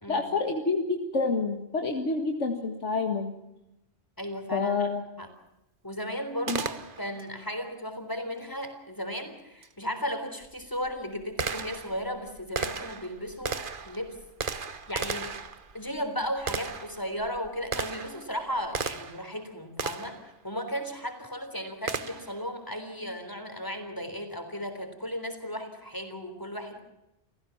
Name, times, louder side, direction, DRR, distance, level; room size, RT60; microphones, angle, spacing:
voice 1, 0.1-3.3 4.5-5.0 6.5-6.6, left 3 dB, 75° left, 4 dB, 2.1 m, -28 dB
voice 2, 4.2-4.9 5.2-5.3 5.8-14.2 14.5-15.3 15.7-26.8, equal, 15° left, 6 dB, 3.7 m, -35 dB
Gunshot gunfire, 6.5-7.3 9.6-9.7 10.4-19.3 19.8-20.3 21.9-22.4, right 5 dB, 45° right, 1.3 m, -35 dB
29.0 x 15.5 x 7.2 m, 0.90 s
omnidirectional pair, 1.2 m